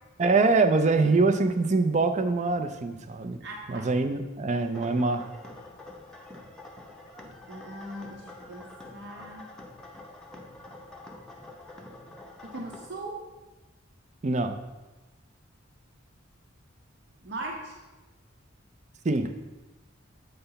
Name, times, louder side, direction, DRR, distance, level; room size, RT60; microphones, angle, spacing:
voice 1, 0.2-3.4 3.7-5.3 14.2-14.6 19.0-19.3, right 3 dB, 35° right, 8 dB, 0.5 m, -24 dB
voice 2, 3.4-3.9 7.5-9.5 12.4-13.2 17.2-17.7, right 2 dB, 60° right, -1 dB, 0.9 m, -39 dB
sound 1, 4.5-12.9, left 2 dB, 5° left, 0.7 m, -47 dB
7.9 x 3.4 x 5.6 m, 1.1 s
head